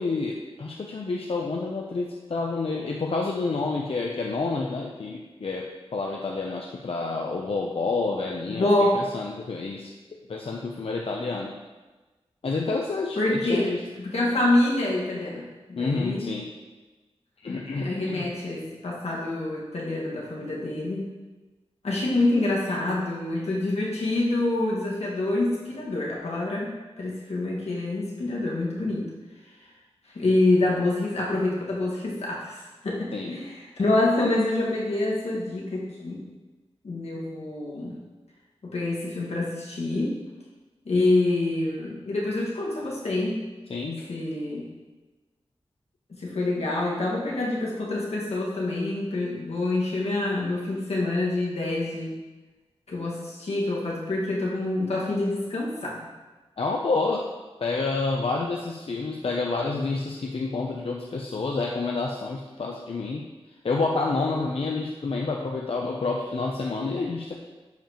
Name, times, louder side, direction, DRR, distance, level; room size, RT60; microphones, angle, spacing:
voice 1, 0.0-8.7 8.9-9.9 10.3-11.5 12.4-13.8 15.8-16.5 17.4-18.3 33.1-33.3 43.7-44.0 56.6-57.2 57.6-63.2 63.6-67.3, left 3 dB, 60° left, 0 dB, 0.6 m, -29 dB
voice 2, 8.5-9.0 13.1-16.3 17.8-21.1 21.8-29.1 30.1-36.2 36.8-38.0 38.6-40.2 40.8-43.5 44.1-44.7 46.2-52.1 52.9-56.0, left 2 dB, 80° left, -4 dB, 1.8 m, -26 dB
10.5 x 5.2 x 3.0 m, 1.2 s
wide cardioid pair, 75°, 11 cm